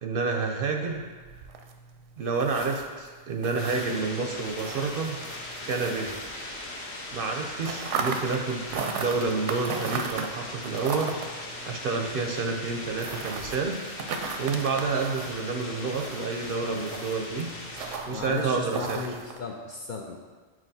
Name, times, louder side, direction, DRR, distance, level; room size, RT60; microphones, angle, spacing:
voice 1, 0.0-1.0 2.2-5.2 5.7-6.2 7.1-13.8 14.4-17.6 18.1-19.2, right 4 dB, 60° right, 3 dB, 0.6 m, -29 dB
sound 1, 0.8-6.8 7.1-19.4, right 5 dB, 85° right, 0.9 m, -37 dB
sound 2, 3.6-18.0, left 2 dB, 80° left, 1.3 m, -39 dB
voice 2, 18.1-20.2, left 4 dB, 60° left, 0 dB, 0.5 m, -35 dB
7.6 x 4.7 x 2.7 m, 1.4 s
omnidirectional pair, 1.2 m